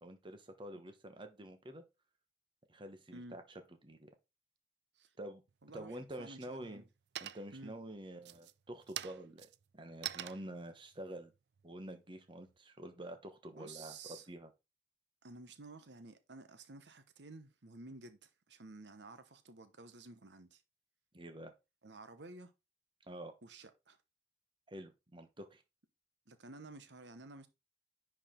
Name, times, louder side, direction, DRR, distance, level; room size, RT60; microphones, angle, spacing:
voice 1, 0.0-1.8 2.7-3.4 3.8-4.1 5.2-5.4 5.7-6.8 7.2-9.5 9.7-11.3 11.6-14.0 14.3-14.5 21.1-21.5 23.1-23.3 24.7-25.6, right 1 dB, 30° right, 1.2 m, -48 dB
sound 1, 5.5-6.1 6.5-6.9 7.1-7.7 8.2-12.6, right 12 dB, 70° right, 0.4 m, -46 dB
voice 2, 5.6-6.8 7.5-7.7 13.5-14.3 15.2-20.6 21.8-22.5 23.4-24.0 26.3-27.5, right 3 dB, 90° right, 1.1 m, -52 dB
10.0 x 4.9 x 3.8 m
head